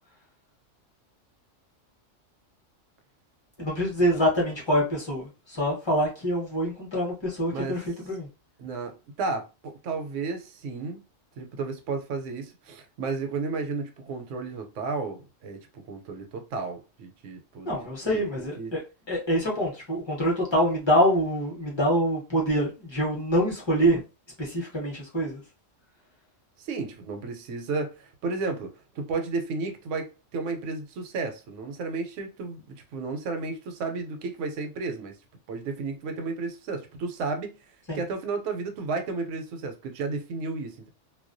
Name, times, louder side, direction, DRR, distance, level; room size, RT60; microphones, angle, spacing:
voice 1, 3.6-8.3 17.6-18.8 19.1-24.0 24.4-25.4 37.9-38.0, equal, 25° left, 0.7 m, -25 dB
voice 2, 7.5-7.8 8.6-11.0 11.4-17.7 18.1-18.2 18.6-18.8 26.6-35.2 35.5-37.5 37.9-40.9, right 4 dB, 75° right, 0.9 m, -33 dB
2.3 x 2.1 x 2.5 m
omnidirectional pair, 1.3 m